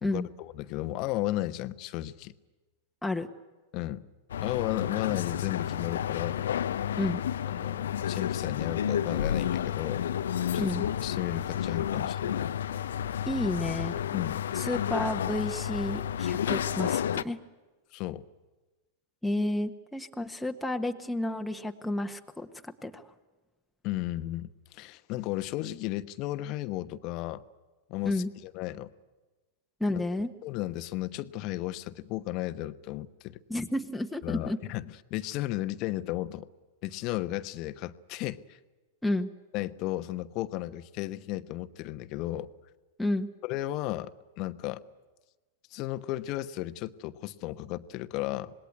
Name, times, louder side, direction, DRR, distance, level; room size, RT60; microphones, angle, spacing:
voice 1, 0.0-2.3 3.7-4.1 4.4-6.5 7.5-10.0 10.5-10.6 11.0-12.4 14.1-14.4 17.9-18.2 23.8-27.4 27.9-28.9 29.9-30.0 30.4-33.4 34.2-36.5 36.8-38.6 39.5-42.5 43.4-44.8 45.7-48.5, left 16 dB, 45° left, 12 dB, 1.1 m, -34 dB
sound 1, 4.3-17.2, left 9 dB, 70° left, 0.7 m, -31 dB
voice 2, 10.5-10.9 13.3-14.0 14.5-17.4 19.2-23.0 28.0-28.3 29.8-30.3 33.5-34.6 39.0-39.3 43.0-43.3, left 1 dB, 5° left, 3 dB, 1.4 m, -31 dB
26.5 x 20.0 x 9.5 m, 1.2 s
hypercardioid pair, 100°, 0 cm